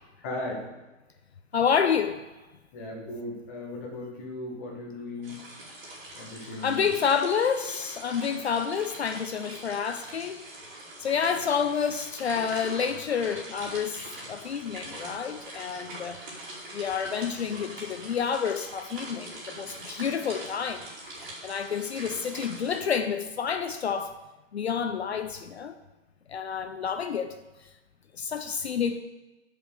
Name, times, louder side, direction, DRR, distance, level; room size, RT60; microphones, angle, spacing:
voice 1, 0.2-0.6 2.7-5.4 6.1-6.9, left 2 dB, 10° left, -3 dB, 0.8 m, -37 dB
voice 2, 1.5-2.2 6.6-10.4 11.0-16.2 16.7-20.9 21.4-24.1 24.5-25.7 26.3-27.3 28.1-29.0, left 7 dB, 55° left, 9 dB, 0.6 m, -29 dB
sound 1, 5.2-22.8, right 1 dB, 35° right, 2.8 m, -43 dB
8.6 x 5.2 x 6.4 m, 1.1 s
hypercardioid pair, 175°, 38 cm